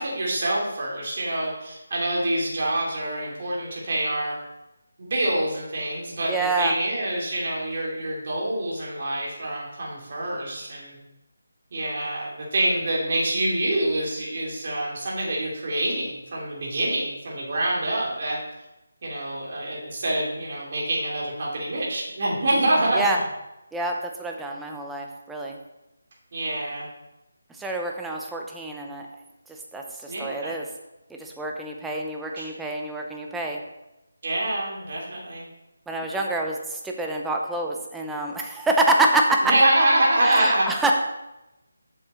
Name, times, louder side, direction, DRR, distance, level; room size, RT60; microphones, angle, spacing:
voice 1, 0.0-4.4 5.0-11.0 11.7-18.4 19.0-23.2 26.3-26.9 30.1-30.5 32.4-32.5 34.2-35.5 39.4-40.7, right 1 dB, 45° right, -4 dB, 2.8 m, -26 dB
voice 2, 6.3-6.7 22.9-23.2 23.7-25.6 27.5-29.1 29.5-30.7 31.1-33.6 35.9-39.5 40.2-40.9, right 2 dB, 5° right, 1 dB, 0.6 m, -26 dB
7.1 x 6.6 x 4.3 m, 0.95 s
figure-of-eight pair, 165°, 0 cm